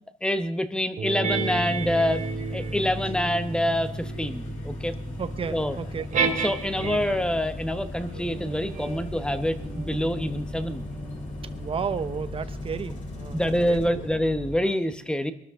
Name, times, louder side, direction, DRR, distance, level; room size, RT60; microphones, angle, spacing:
voice 1, 0.2-2.2 2.5-4.9 5.5-5.8 6.4-10.8 13.3-15.3, left 1 dB, 5° left, 10 dB, 1.1 m, -26 dB
sound 1, 1.0-7.4 8.1-13.0, right 4 dB, 50° right, 2.7 m, -33 dB
sound 2, 1.3-14.5, left 2 dB, 50° left, 5.8 m, -38 dB
voice 2, 5.2-6.1 11.6-14.0, right 6 dB, 35° right, 11 dB, 1.0 m, -33 dB
22.5 x 12.5 x 3.7 m, 0.72 s
cardioid pair, 110°, 17 cm